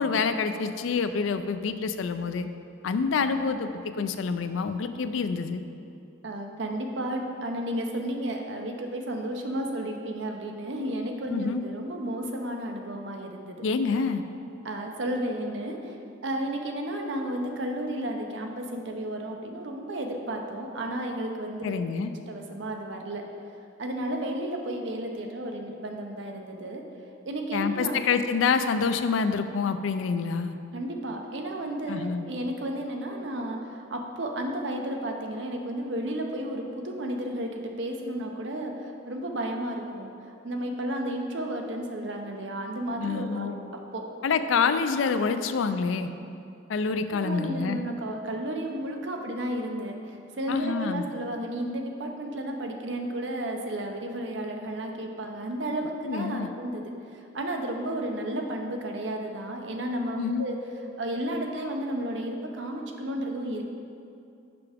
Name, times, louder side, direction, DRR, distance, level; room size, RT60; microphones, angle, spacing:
voice 1, 0.0-2.5 2.8-5.6 11.3-11.6 13.6-14.2 21.6-22.1 27.5-30.6 31.9-32.3 43.0-43.5 44.2-46.1 46.7-47.8 50.5-51.0 56.1-56.5 60.2-60.4, left 5 dB, 85° left, 10 dB, 0.4 m, -27 dB
voice 2, 6.2-13.7 14.0-14.1 14.6-15.9 16.2-21.8 22.3-23.2 23.8-26.8 27.3-28.0 30.7-40.1 40.4-43.6 43.9-44.0 47.1-56.9 57.3-60.6 61.0-63.6, right 1 dB, 65° right, 2 dB, 0.7 m, -32 dB
6.8 x 5.8 x 3.5 m, 2.6 s
head